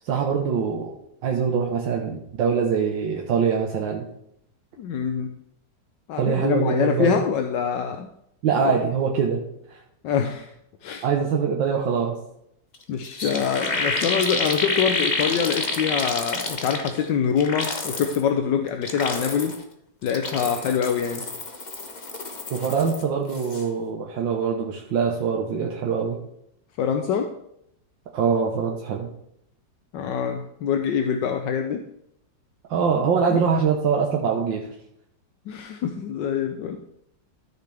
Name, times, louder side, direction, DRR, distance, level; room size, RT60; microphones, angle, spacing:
voice 1, 0.1-0.9 1.2-4.1 6.2-7.1 8.4-9.4 9.7-9.8 11.0-12.2 22.5-26.2 28.1-29.1 32.7-34.7, right 6 dB, 90° right, 0 dB, 1.8 m, -23 dB
voice 2, 4.8-5.3 6.1-8.1 10.0-10.5 10.8-11.0 12.9-19.6 20.0-21.2 26.8-27.3 29.9-31.8 33.3-33.4 35.5-36.8, left 7 dB, 80° left, 5 dB, 1.4 m, -25 dB
sound 1, 12.7-12.8 13.0-17.1 17.4-18.2 18.7-19.6 20.0-23.0 23.3-23.6, left 3 dB, 30° left, 0.8 m, -28 dB
13.5 x 6.7 x 3.5 m, 0.75 s
omnidirectional pair, 2.0 m